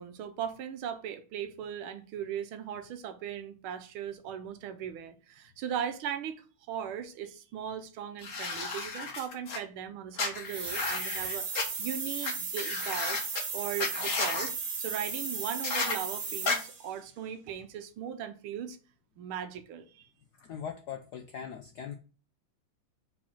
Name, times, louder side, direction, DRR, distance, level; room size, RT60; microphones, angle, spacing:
voice 1, 0.0-13.2 13.5-18.8 19.2-20.1, right 9 dB, 75° right, 1.6 m, -38 dB
sound 1, 8.2-9.6 10.2-11.6 12.2-12.3 12.6-13.4 13.8-14.5 15.6-16.0 16.5-16.6, left 4 dB, 45° left, 1.2 m, -33 dB
sound 2, 10.5-16.9, right 5 dB, 60° right, 2.2 m, -36 dB
voice 2, 20.4-21.9, left 8 dB, 75° left, 0.9 m, -40 dB
4.9 x 4.2 x 5.5 m
omnidirectional pair, 2.4 m